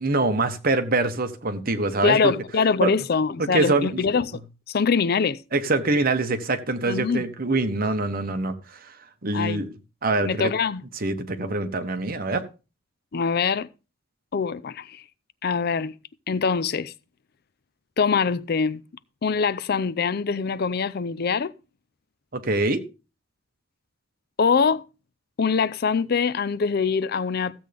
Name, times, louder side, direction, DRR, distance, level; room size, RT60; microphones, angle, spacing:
voice 1, 0.0-2.3 2.8-2.9 3.4-4.0 5.5-8.5 8.8-8.9 9.2-9.7 10.0-10.5 11.0-12.4 22.3-22.8, right 2 dB, 50° right, 1.1 m, -24 dB
voice 2, 2.0-4.4 4.7-5.4 6.9-7.3 9.3-9.6 10.2-10.8 13.1-13.7 14.3-15.0 15.4-15.9 16.3-16.9 18.0-18.8 19.2-21.5 24.4-24.8 25.4-27.5, left 5 dB, 55° left, 0.5 m, -23 dB
14.5 x 7.9 x 3.4 m
head